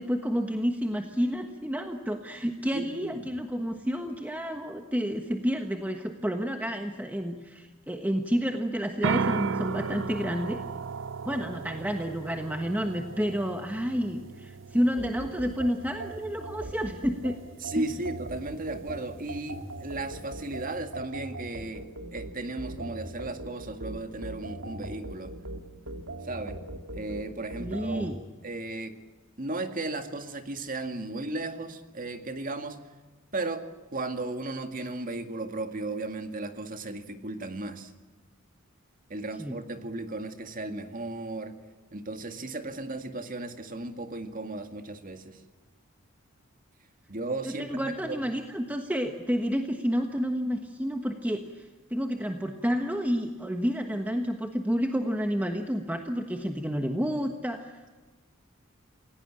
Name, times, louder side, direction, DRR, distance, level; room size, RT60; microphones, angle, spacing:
voice 1, 0.0-10.6 11.2-17.4 17.7-17.8 27.6-28.2 39.4-39.6 47.4-57.9, equal, 10° right, 4 dB, 1.3 m, -30 dB
voice 2, 2.7-3.3 17.6-21.9 22.1-25.3 26.2-26.6 27.0-28.1 28.4-28.9 29.4-32.8 33.3-33.7 33.9-37.9 39.1-41.5 41.9-45.4 47.1-48.2, right 2 dB, 40° right, 7 dB, 2.1 m, -35 dB
sound 1, 9.0-20.8, right 5 dB, 65° right, 0.7 m, -37 dB
sound 2, 15.0-28.1, right 1 dB, 90° right, 2.9 m, -40 dB
28.0 x 17.0 x 8.9 m, 1.3 s
head